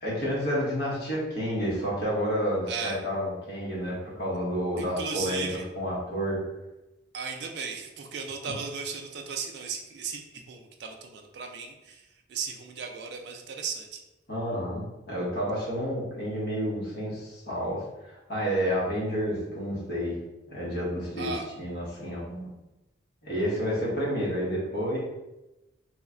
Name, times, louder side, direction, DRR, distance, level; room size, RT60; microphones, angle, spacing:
voice 1, 0.0-6.4 14.3-20.1 20.5-21.3 21.6-22.5 23.2-25.0, equal, 55° left, -6 dB, 1.0 m, -30 dB
voice 2, 2.7-3.0 4.8-5.6 7.1-14.0 21.2-21.5, right 5 dB, 60° right, 4 dB, 0.4 m, -36 dB
3.1 x 2.1 x 3.6 m, 0.99 s
head